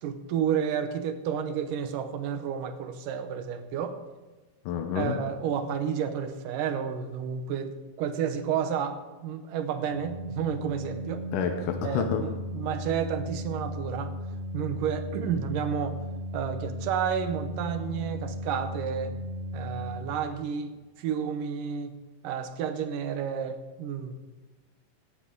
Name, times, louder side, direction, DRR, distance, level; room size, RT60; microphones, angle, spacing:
voice 1, 0.0-4.0 4.9-11.3 11.8-14.1 14.5-16.0 16.3-19.1 19.5-20.7 21.0-22.0 22.2-24.2, right 8 dB, 85° right, 9 dB, 2.5 m, -31 dB
voice 2, 4.7-5.2 11.3-12.2, left 7 dB, 80° left, 5 dB, 2.5 m, -28 dB
Organ, 9.8-20.6, equal, 30° left, 1.4 m, -36 dB
17.5 x 12.0 x 3.8 m, 1.2 s
omnidirectional pair, 3.7 m